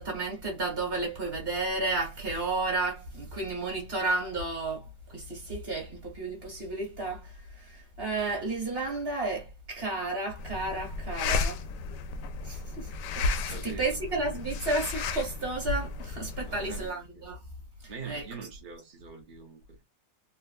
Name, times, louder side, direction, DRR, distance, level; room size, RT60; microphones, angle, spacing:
voice 1, 0.0-11.6 12.4-17.4 18.1-18.2, right 2 dB, 35° right, 1.5 m, -32 dB
sound 1, 10.4-16.9, left 4 dB, 75° left, 1.1 m, -33 dB
voice 2, 13.5-14.0 16.4-17.3 17.9-19.8, right 5 dB, 70° right, 0.4 m, -44 dB
3.6 x 2.5 x 2.4 m
omnidirectional pair, 2.0 m